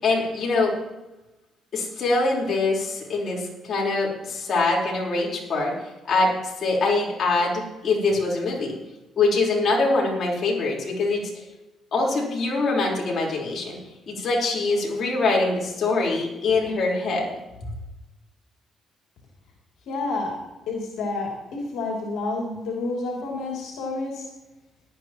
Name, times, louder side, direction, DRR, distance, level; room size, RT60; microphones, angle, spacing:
voice 1, 0.0-0.7 1.7-5.7 6.1-6.3 6.6-8.7 9.2-11.3 11.9-13.8 14.1-17.3 17.6-17.7, left 3 dB, 55° left, -2 dB, 4.3 m, -23 dB
voice 2, 19.9-20.4 20.7-24.2, left 3 dB, 85° left, -2 dB, 2.9 m, -29 dB
18.0 x 11.5 x 3.0 m, 1.0 s
cardioid pair, 90°, 0 cm